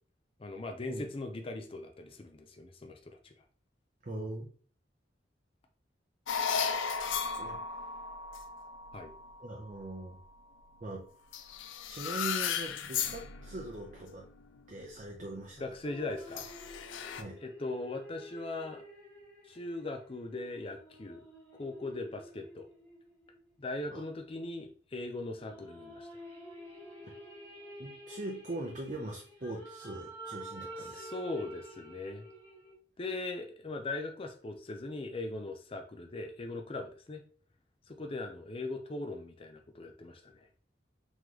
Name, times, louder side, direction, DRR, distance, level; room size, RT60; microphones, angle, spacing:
voice 1, 0.4-3.3 8.9-9.1 15.6-16.5 17.4-18.8 19.5-21.2 21.5-22.7 23.6-26.1 30.9-32.3 33.0-37.2 37.9-40.5, left 2 dB, 30° left, 5 dB, 0.5 m, -39 dB
voice 2, 4.0-4.5 7.4-7.6 9.4-10.2 10.8-11.1 11.9-14.3 14.7-15.6 17.1-17.4 23.9-24.0 27.8-31.1, right 2 dB, 40° right, 0 dB, 0.6 m, -41 dB
sound 1, 6.3-10.8 11.3-14.2 14.8-15.0 16.3-17.2, left 6 dB, 90° left, 0.4 m, -36 dB
sound 2, 15.8-23.5 25.3-32.7, right 1 dB, 15° left, 1.2 m, -49 dB
3.8 x 3.1 x 3.1 m, 0.42 s
head